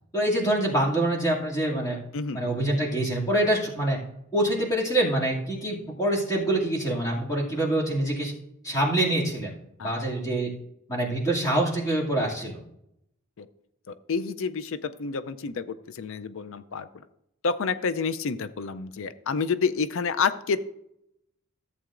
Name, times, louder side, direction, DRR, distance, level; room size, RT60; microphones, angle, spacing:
voice 1, 0.1-2.0 2.3-4.0 4.3-8.3 8.6-9.5 9.8-10.5 10.9-12.6, right 1 dB, 15° left, -4 dB, 2.3 m, -25 dB
voice 2, 13.9-16.9 17.4-20.6, left 5 dB, 65° left, 13 dB, 0.5 m, -29 dB
14.0 x 7.9 x 2.5 m, 0.79 s
head